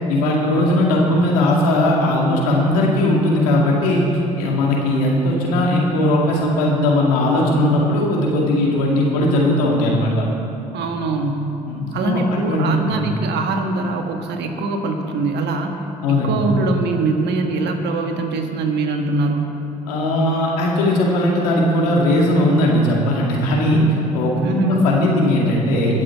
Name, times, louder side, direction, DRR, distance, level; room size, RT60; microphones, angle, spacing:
voice 1, 0.1-4.0 4.4-10.2 11.7-13.0 16.0-16.4 19.9-23.8 24.1-26.0, left 1 dB, 85° left, -2 dB, 2.1 m, -18 dB
voice 2, 10.7-11.5 11.9-15.8 16.2-19.6 24.4-24.9, right 3 dB, 65° right, 4 dB, 1.6 m, -22 dB
21.5 x 7.4 x 4.7 m, 2.8 s
hypercardioid pair, 55°, 19 cm